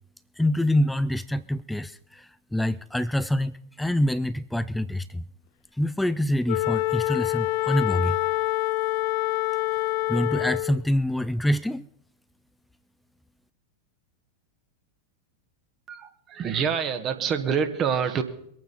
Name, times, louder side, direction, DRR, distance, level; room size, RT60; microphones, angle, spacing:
voice 1, 0.4-5.2 5.8-8.2 10.1-11.9, left 1 dB, 5° left, 15 dB, 0.4 m, -26 dB
Wind instrument woodwind instrument, 6.5-10.8, left 18 dB, 50° left, 0.8 m, -26 dB
voice 2, 15.9-18.2, right 7 dB, 30° right, 7 dB, 1.5 m, -26 dB
24.0 x 9.1 x 4.2 m, 0.71 s
figure-of-eight pair, 90°, 0 cm